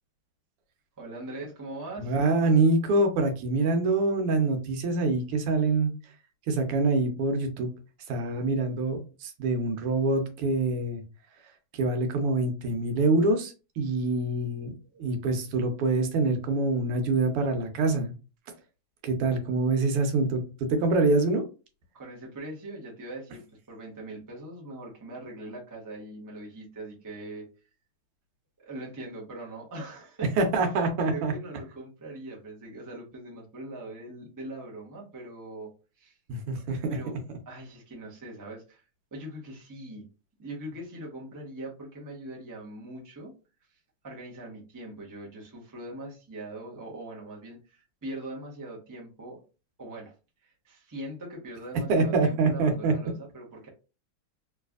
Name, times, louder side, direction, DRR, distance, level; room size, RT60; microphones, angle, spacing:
voice 1, 1.0-2.1 21.9-23.4 23.7-27.5 28.6-30.3 31.0-36.2 36.9-37.2 37.5-38.8 39.1-40.1 40.4-43.3 43.7-43.8 44.0-49.4 49.8-50.1 50.4-53.7, right 1 dB, 20° right, -3 dB, 0.5 m, -41 dB
voice 2, 2.0-5.9 6.5-7.7 8.1-11.0 11.7-14.7 15.0-18.1 19.0-20.4 20.7-21.4 30.4-31.3 36.3-37.0 51.9-52.9, right 3 dB, 90° right, 5 dB, 1.8 m, -25 dB
3.3 x 3.2 x 2.4 m, 0.32 s
omnidirectional pair, 2.4 m